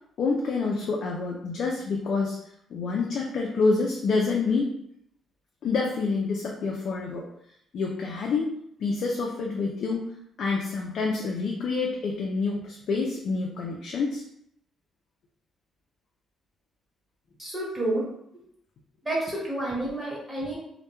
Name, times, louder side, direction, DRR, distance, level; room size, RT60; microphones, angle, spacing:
voice 1, 0.2-2.4 2.7-4.7 5.6-7.2 7.7-8.5 8.8-10.1 10.4-14.2, left 4 dB, 65° left, -2 dB, 0.4 m, -27 dB
voice 2, 17.4-18.0 19.1-20.6, right 1 dB, 20° right, -6 dB, 1.1 m, -29 dB
2.1 x 2.1 x 2.9 m, 0.73 s
cardioid pair, 90°, 0 cm